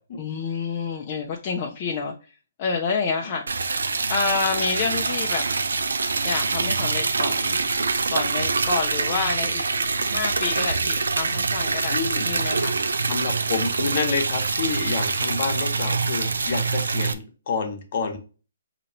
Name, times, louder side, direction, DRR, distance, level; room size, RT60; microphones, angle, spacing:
voice 1, 0.2-2.3 2.6-3.4 4.1-5.4 6.2-7.6 8.1-9.7 10.0-12.0 12.2-12.8, left 5 dB, 30° left, 0 dB, 0.6 m, -28 dB
Liquid, 3.5-17.1, right 4 dB, 85° right, 0.5 m, -25 dB
voice 2, 11.9-12.3 13.1-18.2, left 5 dB, 50° left, 4 dB, 1.1 m, -28 dB
5.0 x 3.0 x 2.8 m, 0.35 s
hypercardioid pair, 150°, 0 cm